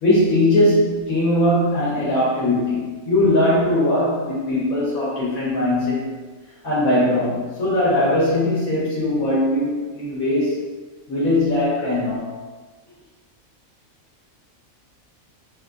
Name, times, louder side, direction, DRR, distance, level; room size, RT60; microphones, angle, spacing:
voice 1, 0.0-6.1 6.6-10.6 11.1-12.3, left 1 dB, 80° left, -7 dB, 1.2 m, -20 dB
3.5 x 2.4 x 2.4 m, 1.3 s
omnidirectional pair, 1.5 m